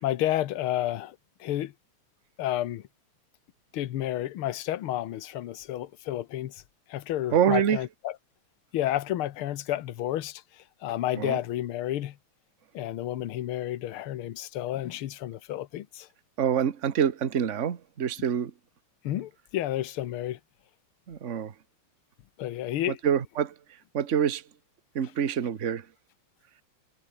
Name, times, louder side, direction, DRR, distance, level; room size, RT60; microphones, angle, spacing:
voice 1, 0.0-1.7 2.4-2.8 3.7-6.6 6.9-8.2 8.7-12.2 12.7-16.1 19.0-20.4 22.4-23.0, left 13 dB, 75° left, 1.9 m, -31 dB
voice 2, 7.3-7.8 11.1-11.4 16.4-18.5 21.1-21.5 22.9-23.5 23.9-24.4 24.9-25.9, right 8 dB, 40° right, 1.4 m, -26 dB
omnidirectional pair, 2.4 m